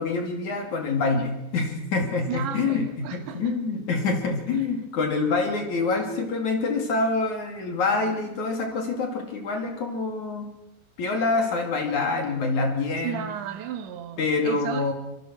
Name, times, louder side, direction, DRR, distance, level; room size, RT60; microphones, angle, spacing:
voice 1, 0.0-2.9 3.1-10.5 11.0-13.3 14.2-14.9, left 3 dB, 45° left, 3.5 m, -26 dB
voice 2, 2.3-3.6 4.5-4.7 13.0-14.9, right 9 dB, 80° right, 4.1 m, -34 dB
25.0 x 22.5 x 6.3 m
omnidirectional pair, 5.2 m